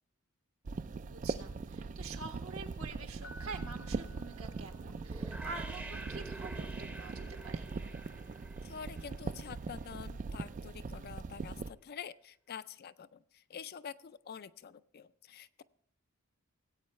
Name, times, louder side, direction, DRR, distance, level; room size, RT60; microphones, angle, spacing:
sound 1, 0.7-11.7, right 4 dB, 35° right, 0.3 m, -41 dB
voice 1, 1.0-7.7, right 4 dB, 70° right, 4 dB, 1.6 m, -47 dB
Piano, 3.2-5.3, equal, 70° left, 1.3 m, -55 dB
sound 2, 5.1-10.0, right 2 dB, 10° right, 0.7 m, -49 dB
voice 2, 8.6-15.6, left 7 dB, 45° left, 14 dB, 0.4 m, -47 dB
18.0 x 8.5 x 3.2 m, 0.68 s
head